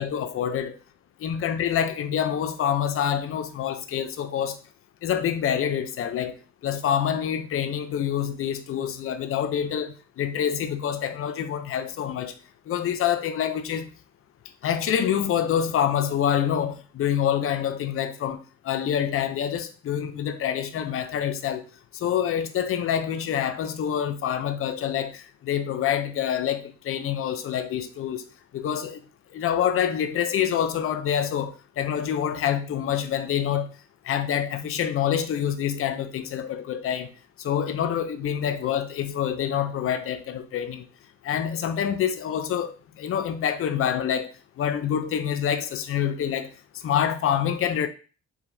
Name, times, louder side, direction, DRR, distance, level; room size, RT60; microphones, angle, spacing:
voice 1, 0.0-0.7 1.2-4.6 5.0-6.4 6.6-12.3 12.7-13.9 14.6-18.4 18.6-21.6 22.0-28.2 28.5-29.0 29.3-33.7 34.1-37.1 37.4-40.8 41.2-42.7 43.0-44.3 44.6-46.5 46.8-47.9, left 9 dB, 45° left, 0.5 m, -26 dB
4.8 x 2.8 x 2.6 m
cardioid pair, 90°, 30 cm